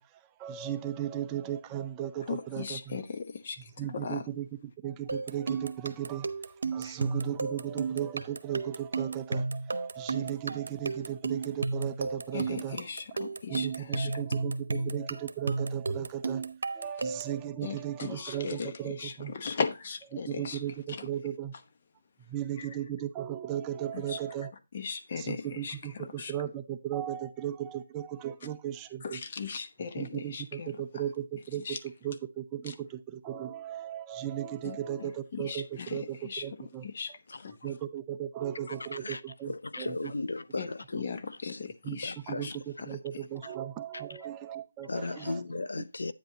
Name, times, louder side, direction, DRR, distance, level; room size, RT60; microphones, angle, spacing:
voice 1, 0.0-3.0 3.6-12.8 13.5-19.3 20.1-21.5 22.2-24.5 25.2-29.2 30.0-37.2 37.6-39.5 39.8-39.9 41.8-42.0 42.3-45.4 45.8-45.9, right 11 dB, 15° right, 0.5 m, -36 dB
voice 2, 2.3-3.6 3.9-4.2 6.8-7.0 12.3-13.7 13.9-14.1 17.6-18.7 19.0-20.6 23.9-24.2 24.7-25.7 26.2-26.3 29.0-30.7 31.6-31.8 34.6-36.4 36.8-37.1 37.4-37.5 40.6-40.7 41.0-42.1 42.4-42.5, left 5 dB, 40° left, 1.0 m, -37 dB
sound 1, 5.1-17.4, right 3 dB, 75° right, 0.9 m, -33 dB
voice 3, 37.3-37.7 38.7-41.7 42.0-42.9 43.4-43.5 43.9-44.0 44.9-46.1, left 3 dB, 90° left, 0.5 m, -37 dB
9.0 x 8.1 x 2.8 m
hypercardioid pair, 165°, 0 cm